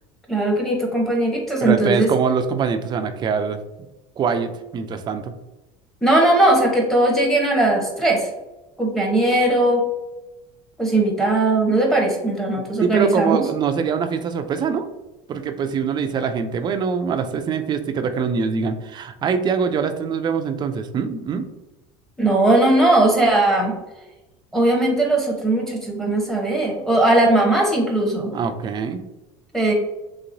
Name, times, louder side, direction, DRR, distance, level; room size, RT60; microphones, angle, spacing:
voice 1, 0.3-2.1 6.0-8.3 8.8-9.8 10.8-13.4 22.2-23.7 24.5-28.3 29.5-29.7, right 2 dB, ahead, -1 dB, 0.8 m, -18 dB
voice 2, 1.6-3.6 4.2-5.3 12.8-14.9 15.3-21.5 28.3-29.0, right 6 dB, 30° right, 8 dB, 0.4 m, -23 dB
3.2 x 2.9 x 2.6 m, 1.0 s
supercardioid pair, 115°, 14 cm